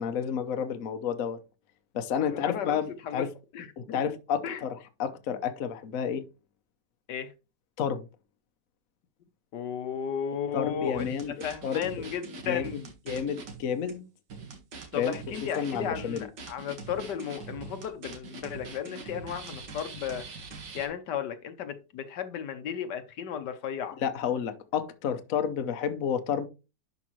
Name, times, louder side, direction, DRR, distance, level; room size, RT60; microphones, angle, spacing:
voice 1, 0.0-1.4 1.9-3.3 3.8-6.2 7.8-8.0 10.5-11.3 11.6-11.9 12.5-12.7 13.1-14.0 15.0-15.2 15.6-16.3 24.0-26.5, left 7 dB, 55° left, 1.1 m, -30 dB
voice 2, 2.2-2.8 3.0-3.2 3.5-4.0 4.4-4.6 7.1-7.3 9.5-12.9 14.9-20.2 20.7-24.0, left 8 dB, 70° left, 1.4 m, -34 dB
sound 1, 10.9-13.6 13.9-14.0 14.3-20.9, right 4 dB, 65° right, 2.2 m, -43 dB
11.0 x 5.2 x 3.1 m
omnidirectional pair, 2.0 m